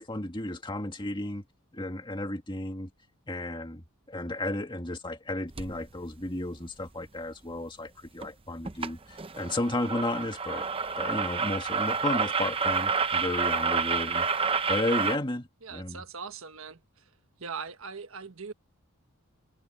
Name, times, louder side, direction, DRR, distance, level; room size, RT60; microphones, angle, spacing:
voice 1, 0.0-1.4 1.7-2.9 3.3-3.8 4.1-10.7 11.0-16.0, left 1 dB, 20° left, 2.0 m, -33 dB
sound 1, 5.6-5.8 8.2-8.3 8.7-8.9 9.2-15.2, right 5 dB, 25° right, 0.7 m, -29 dB
voice 2, 15.6-17.1 17.4-18.5, right 5 dB, 70° right, 1.4 m, -41 dB
head